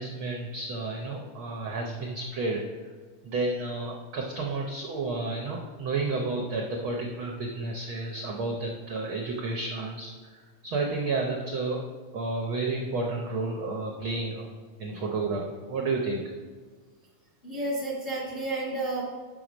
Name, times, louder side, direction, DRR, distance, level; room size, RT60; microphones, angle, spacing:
voice 1, 0.0-2.6 3.2-11.8 12.1-14.5 14.8-16.2, right 3 dB, 85° right, 0 dB, 1.1 m, -31 dB
voice 2, 17.4-19.1, right 2 dB, 35° left, -4 dB, 0.9 m, -31 dB
7.7 x 6.4 x 5.1 m, 1.5 s
omnidirectional pair, 3.5 m